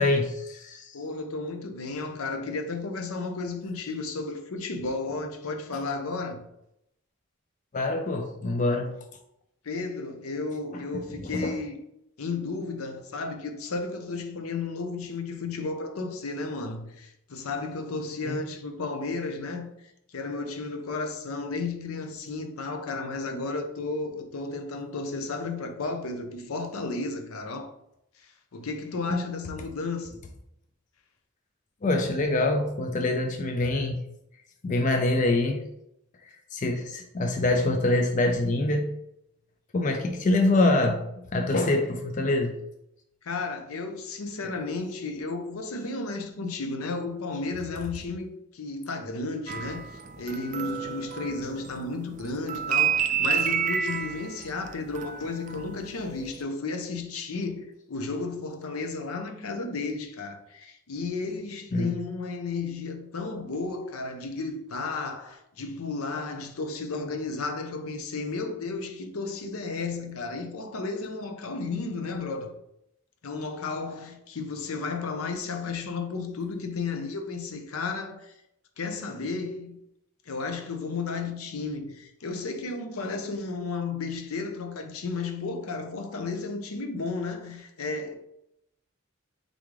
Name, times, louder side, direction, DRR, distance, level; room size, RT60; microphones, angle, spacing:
voice 1, 0.0-1.0 7.7-8.9 11.2-11.6 18.3-18.4 29.1-29.2 31.8-34.0 34.6-35.6 36.2-38.9 39.7-41.0 41.3-42.6 61.7-61.9, left 2 dB, 35° left, 0.4 m, -25 dB
voice 2, 0.9-6.4 9.6-11.8 12.2-27.7 28.2-30.2 43.2-72.5 73.2-78.3 78.8-79.8 80.3-88.1, left 3 dB, 85° left, 0.6 m, -33 dB
sound 1, 49.5-51.9 52.1-55.8 56.1-56.4, right 8 dB, 35° right, 0.3 m, -29 dB
3.7 x 3.2 x 3.6 m
head